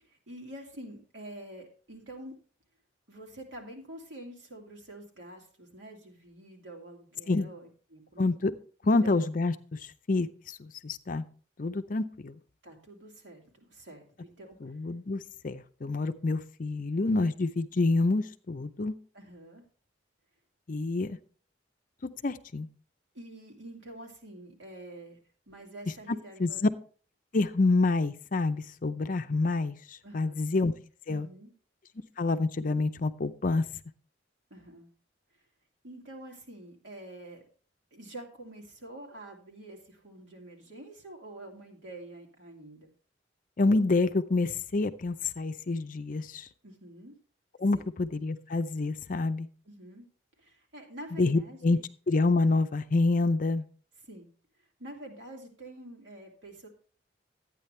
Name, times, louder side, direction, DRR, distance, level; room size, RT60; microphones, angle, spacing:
voice 1, 0.1-2.4 3.1-8.3 8.8-9.2 12.6-14.7 19.1-19.6 23.1-25.2 25.5-26.6 30.0-30.4 31.1-31.5 34.5-34.9 35.8-37.4 37.9-42.9 46.6-47.1 47.7-47.9 49.6-50.0 50.4-51.8 54.0-54.3 54.8-56.7, right 1 dB, 75° right, 0 dB, 2.7 m, -47 dB
voice 2, 8.2-8.5 8.9-9.8 10.1-10.3 10.6-11.2 11.6-12.3 14.6-18.9 20.7-21.2 22.0-22.7 26.4-26.7 27.3-29.8 30.1-30.7 31.1-31.3 32.2-33.6 43.6-46.5 47.6-49.5 51.2-51.8 52.1-53.6, left 3 dB, 45° left, 10 dB, 0.5 m, -27 dB
12.0 x 9.0 x 3.2 m, 0.41 s
head